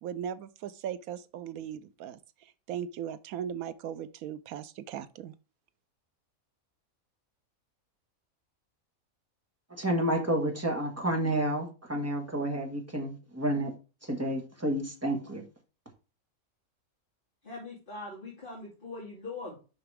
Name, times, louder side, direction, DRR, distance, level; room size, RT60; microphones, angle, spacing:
voice 1, 0.0-5.3, right 9 dB, 85° right, 1.1 m, -38 dB
voice 2, 9.7-13.7 14.0-15.4, right 1 dB, 10° right, 1.5 m, -30 dB
voice 3, 17.4-19.6, left 3 dB, 40° left, 2.5 m, -41 dB
7.0 x 5.8 x 3.4 m
omnidirectional pair, 1.5 m